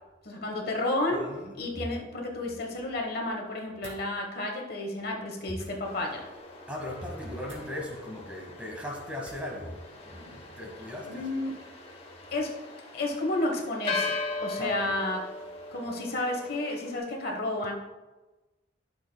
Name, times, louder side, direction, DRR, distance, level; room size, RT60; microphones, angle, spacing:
voice 1, 0.2-1.2 1.6-6.2 11.0-11.6 12.3-12.6 12.9-15.2 15.7-17.7, left 2 dB, 50° left, 1 dB, 1.2 m, -31 dB
voice 2, 1.1-1.8 6.7-11.4 14.6-15.0, left 1 dB, 5° right, -1 dB, 1.3 m, -39 dB
sound 1, 3.8-4.0 5.5-5.7 7.4-7.7 9.2-9.5, right 2 dB, 35° right, 2.1 m, -47 dB
sound 2, 5.8-17.0, left 3 dB, 30° left, 0.9 m, -39 dB
12.0 x 6.5 x 2.2 m, 1.1 s
head